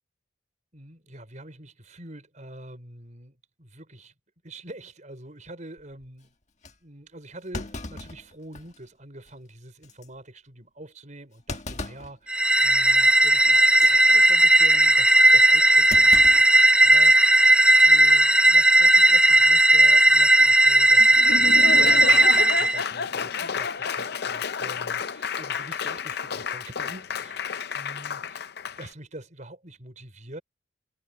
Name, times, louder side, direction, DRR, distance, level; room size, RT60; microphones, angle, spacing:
voice 1, 0.7-4.1 4.4-6.3 6.8-16.5 16.8-28.4 28.8-30.4, right 1 dB, 40° right, 4.9 m, -45 dB
Thump thud, 5.8-6.1 6.6-6.7 7.5-8.9 9.3-9.4 9.8-10.1 11.5-12.1 12.6-12.9 13.6-13.9 15.9-17.1 17.4-17.5 18.7-19.0, left 2 dB, 35° left, 1.6 m, -38 dB
sound 1, 12.3-22.8, right 1 dB, 5° right, 0.4 m, -16 dB
Laughter / Applause, 21.0-28.9, left 6 dB, 55° left, 0.6 m, -31 dB
head